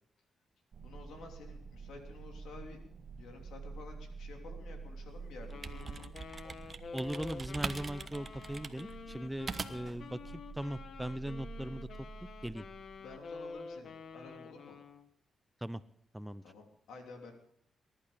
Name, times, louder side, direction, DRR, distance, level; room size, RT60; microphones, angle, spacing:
sound 1, 0.7-13.6, right 4 dB, 60° right, 1.2 m, -49 dB
voice 1, 0.8-2.8 3.2-6.1 9.6-9.9 13.0-14.8 16.4-17.3, left 3 dB, 90° left, 2 dB, 3.1 m, -51 dB
sound 2, 5.3-10.0, right 4 dB, 40° right, 1.1 m, -42 dB
Wind instrument woodwind instrument, 5.5-15.1, left 5 dB, 65° left, 1.2 m, -48 dB
voice 2, 6.9-11.9 12.4-12.6 15.6-15.8 16.1-16.4, right 1 dB, 5° right, 15 dB, 0.6 m, -39 dB
20.5 x 11.5 x 5.1 m, 0.69 s
cardioid pair, 75°, 0 cm